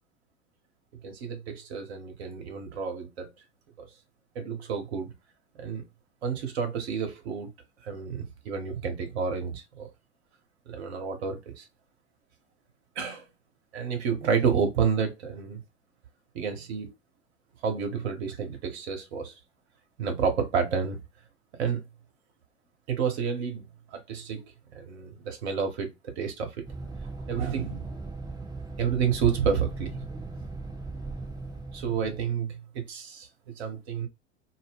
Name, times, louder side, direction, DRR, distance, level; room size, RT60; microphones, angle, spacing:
voice 1, 1.0-3.3 3.8-3.9 4.3-5.1 5.6-5.8 6.2-7.5 7.8-9.9 10.7-11.7 13.0-13.2 13.7-15.6 16.3-16.9 17.6-19.3 20.0-21.0 21.6-21.8 22.9-26.6 27.3-27.9 28.8-30.0 31.7-33.3 33.6-34.1, right 6 dB, 60° right, 0.9 m, -30 dB
sound 1, 26.6-32.3, right 3 dB, 10° right, 0.8 m, -38 dB
2.1 x 2.1 x 3.4 m
figure-of-eight pair, 85°, 36 cm